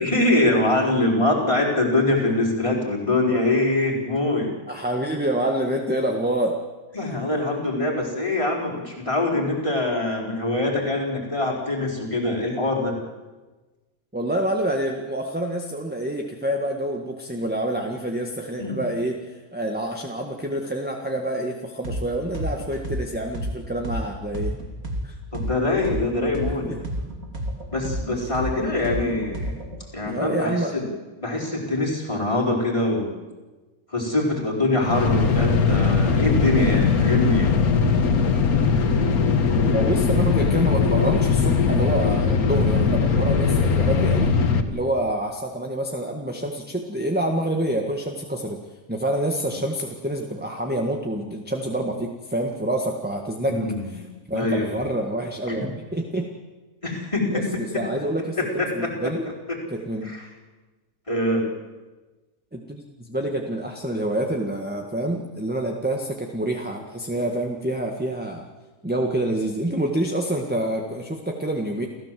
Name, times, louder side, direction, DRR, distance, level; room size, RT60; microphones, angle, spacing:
voice 1, 0.0-4.5 6.9-13.0 18.6-18.8 25.3-26.7 27.7-29.5 29.9-30.9 31.2-33.1 33.9-37.5 53.4-53.9 54.3-54.8 55.5-55.7 56.8-57.6 58.4-58.9 60.0-60.2 61.1-61.5, left 2 dB, 20° left, -3 dB, 4.5 m, -23 dB
voice 2, 4.7-6.6 14.1-24.6 25.0-25.1 26.6-26.8 30.1-30.7 39.7-44.3 44.7-48.6 48.9-54.0 54.3-56.3 57.3-59.2 59.7-60.1 62.5-68.4 68.8-71.9, right 1 dB, 5° right, 2 dB, 1.6 m, -27 dB
sound 1, 21.8-22.0 22.3-26.0 26.3-29.8, equal, 75° right, 3.1 m, -30 dB
sound 2, 34.8-44.6, left 5 dB, 80° left, 2.0 m, -20 dB
29.0 x 15.0 x 7.7 m, 1.2 s
omnidirectional pair, 1.5 m